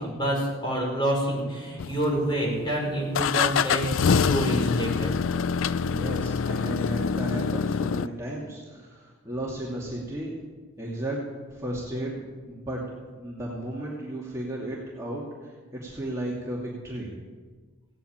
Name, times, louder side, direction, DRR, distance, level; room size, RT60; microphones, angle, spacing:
voice 1, 0.0-5.2, right 1 dB, 20° left, -3 dB, 5.3 m, -28 dB
sound 1, 1.8-2.5 3.1-8.1, left 6 dB, 80° left, 0.4 m, -25 dB
voice 2, 5.8-10.4 10.8-11.2 11.5-12.8 13.1-17.1, right 1 dB, 15° right, -5 dB, 2.4 m, -34 dB
17.0 x 9.1 x 8.8 m, 1.4 s
head